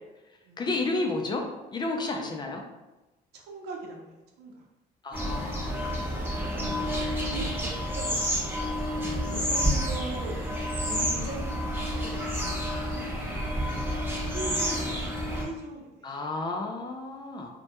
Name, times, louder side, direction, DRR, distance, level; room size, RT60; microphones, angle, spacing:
voice 1, 0.6-2.6 5.0-7.3 16.0-17.5, left 2 dB, 25° left, 2 dB, 0.3 m, -33 dB
voice 2, 3.3-4.6 6.5-7.0 7.3-10.4 10.8-13.2 14.3-16.1, right 2 dB, 75° right, 0 dB, 0.6 m, -41 dB
sound 1, 5.1-15.4, equal, 10° right, 0.9 m, -29 dB
2.2 x 2.1 x 2.8 m, 1.1 s
cardioid pair, 110°, 17 cm